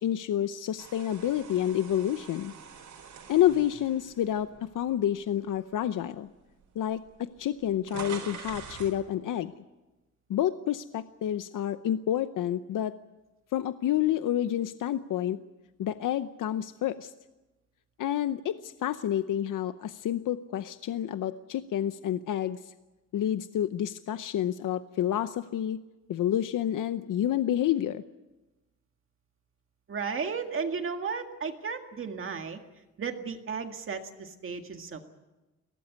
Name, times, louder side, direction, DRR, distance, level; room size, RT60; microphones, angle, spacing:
voice 1, 0.0-2.5 3.3-6.3 6.8-9.5 10.3-12.9 13.5-15.4 15.8-17.1 18.0-22.7 23.1-25.8 26.1-28.0, left 11 dB, 85° left, 11 dB, 0.8 m, -29 dB
sound 1, 0.8-5.0 5.5-5.7 6.6-6.7 6.9-9.0, right 6 dB, 75° right, 4.2 m, -45 dB
voice 2, 29.9-32.6 33.0-35.0, right 5 dB, 40° right, 5 dB, 1.9 m, -34 dB
22.5 x 18.0 x 9.5 m, 1.1 s
wide cardioid pair, 165°, 31 cm